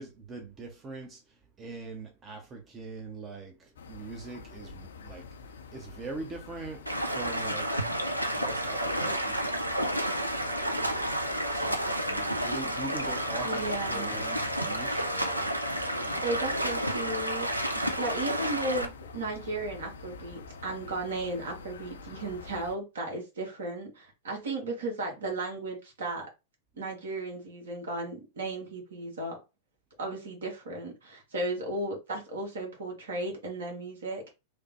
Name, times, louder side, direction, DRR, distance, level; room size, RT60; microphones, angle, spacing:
voice 1, 0.0-8.0 8.3-15.5 15.9-16.4, right 3 dB, 20° right, 0.6 m, -43 dB
sound 1, 3.8-22.8, left 4 dB, 65° left, 0.4 m, -47 dB
Stream, 6.9-18.9, right 1 dB, 85° right, 0.4 m, -31 dB
voice 2, 13.4-14.4 16.2-26.3 26.8-29.4 30.0-34.4, right 2 dB, 65° right, 1.1 m, -35 dB
3.2 x 2.0 x 2.9 m
figure-of-eight pair, 95°, 0 cm